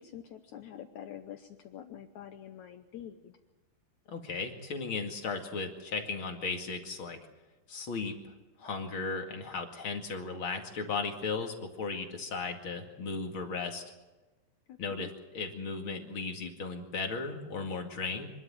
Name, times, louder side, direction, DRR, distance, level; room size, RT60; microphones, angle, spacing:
voice 1, 0.0-3.4 14.7-15.1, left 10 dB, 85° left, 8 dB, 1.6 m, -46 dB
voice 2, 4.1-7.2 7.7-8.1 8.6-13.8 14.8-18.3, left 4 dB, 40° left, 4 dB, 2.3 m, -36 dB
25.5 x 12.5 x 9.0 m, 1.2 s
omnidirectional pair, 4.7 m